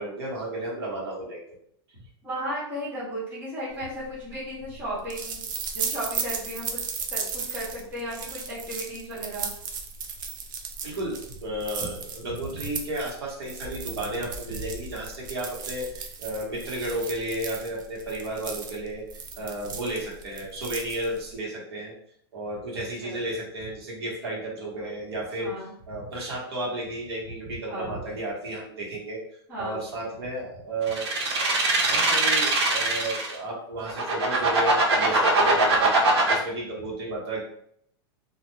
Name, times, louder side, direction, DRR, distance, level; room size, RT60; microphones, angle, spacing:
voice 1, 0.0-1.6 1.9-2.0 10.8-21.9 22.3-29.2 29.6-31.6 31.9-37.4, right 1 dB, 70° right, -3 dB, 1.1 m, -33 dB
voice 2, 2.2-5.5 5.7-6.8 7.1-9.5 23.0-23.2 25.4-25.7 27.7-27.9 29.5-30.1, equal, 10° right, -9 dB, 0.7 m, -35 dB
sound 1, 3.9-21.3, right 5 dB, 50° right, 0.4 m, -36 dB
sound 2, 30.9-33.4 33.9-36.3, right 3 dB, 85° right, 0.8 m, -22 dB
2.4 x 2.1 x 3.0 m, 0.69 s
supercardioid pair, 175°, 14 cm